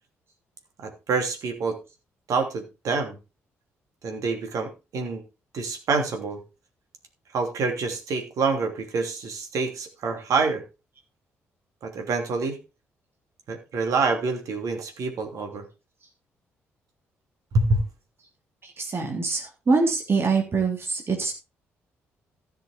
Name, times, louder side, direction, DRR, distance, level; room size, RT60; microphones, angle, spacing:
voice 1, 0.8-1.8 2.3-3.2 4.0-5.2 5.5-6.4 7.3-10.6 11.8-12.6 13.5-15.6 17.5-17.8, right 4 dB, 55° right, 5 dB, 3.0 m, -26 dB
voice 2, 18.6-21.3, right 4 dB, 35° right, 2 dB, 3.5 m, -24 dB
14.5 x 6.4 x 4.6 m, 0.29 s
figure-of-eight pair, 40°, 7 cm